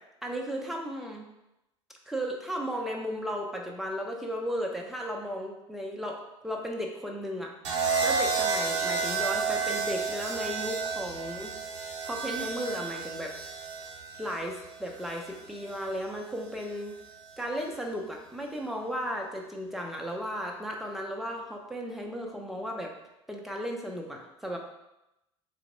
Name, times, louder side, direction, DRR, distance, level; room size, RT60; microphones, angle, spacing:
voice 1, 0.2-1.3 2.1-7.5 8.0-11.5 12.0-13.3 14.2-17.0 17.4-22.9 23.3-24.6, equal, ahead, 0 dB, 0.7 m, -35 dB
sound 1, 7.6-15.8 17.0-17.4, right 5 dB, 75° right, 0.8 m, -31 dB
3.3 x 2.9 x 3.9 m, 0.90 s
figure-of-eight pair, 65°, 15 cm